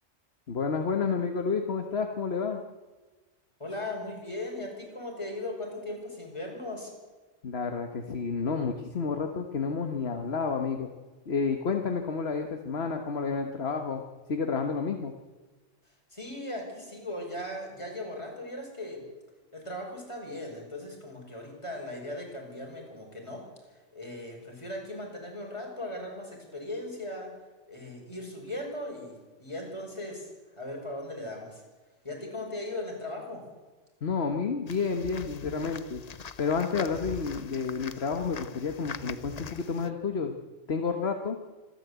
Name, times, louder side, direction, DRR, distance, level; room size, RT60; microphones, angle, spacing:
voice 1, 0.5-2.6 7.4-10.9 11.3-14.0 14.3-15.1 34.0-36.0 36.4-40.3 40.7-41.4, left 5 dB, 55° left, 5 dB, 1.6 m, -30 dB
voice 2, 3.6-6.9 15.9-19.0 19.5-27.3 27.7-31.6 32.0-33.5, left 1 dB, 25° left, 0 dB, 5.5 m, -38 dB
sound 1, 34.7-39.9, left 6 dB, 40° left, 0.7 m, -42 dB
26.0 x 12.5 x 8.3 m, 1.3 s
omnidirectional pair, 1.3 m